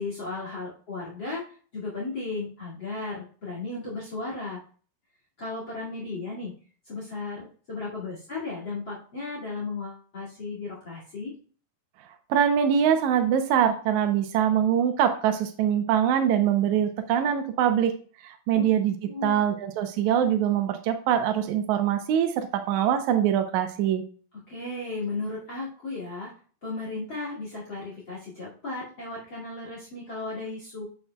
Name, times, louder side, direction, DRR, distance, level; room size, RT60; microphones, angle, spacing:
voice 1, 0.0-4.6 5.4-6.5 6.8-11.3 18.5-18.7 19.0-19.4 24.5-26.3 26.6-30.8, left 3 dB, 35° left, -3 dB, 2.6 m, -35 dB
voice 2, 12.3-17.9 18.2-19.0 19.2-24.0, right 9 dB, 90° right, 7 dB, 1.7 m, -23 dB
7.9 x 7.4 x 2.3 m, 0.42 s
omnidirectional pair, 4.2 m